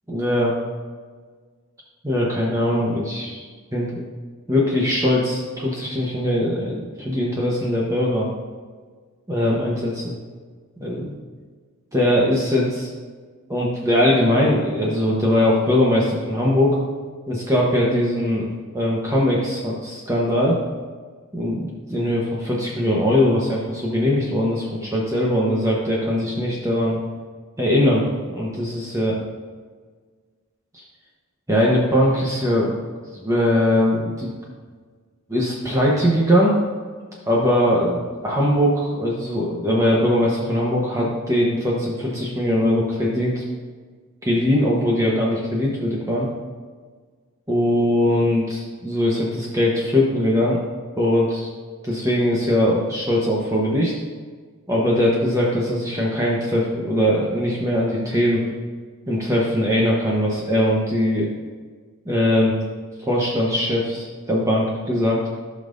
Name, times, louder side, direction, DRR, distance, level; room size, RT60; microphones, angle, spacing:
voice 1, 0.1-0.5 2.0-3.5 3.7-3.9 4.5-8.3 9.3-10.1 10.8-11.2 11.9-12.9 13.5-16.8 17.3-20.6 21.3-27.0 27.6-28.0 28.3-29.1 30.7-30.8 31.5-32.7 33.1-34.3 35.3-36.5 37.3-43.4 44.2-46.3 47.5-50.6 51.0-51.5 51.8-53.9 54.7-58.4 59.1-61.3 62.0-62.6 63.0-65.3, left 1 dB, 15° right, -4 dB, 1.1 m, -21 dB
15.5 x 5.4 x 2.7 m, 1.5 s
head